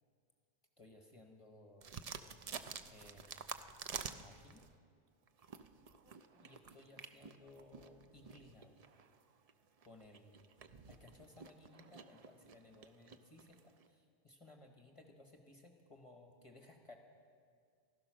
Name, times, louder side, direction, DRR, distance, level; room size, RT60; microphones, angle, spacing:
voice 1, 0.8-1.9 2.8-3.6 4.2-4.7 6.0-8.8 9.8-10.5 10.9-17.0, left 2 dB, 30° left, 3 dB, 1.1 m, -60 dB
sound 1, 1.8-4.7 5.3-13.9, right 6 dB, 45° right, 0.5 m, -50 dB
15.5 x 13.5 x 6.2 m, 2.2 s
omnidirectional pair, 1.2 m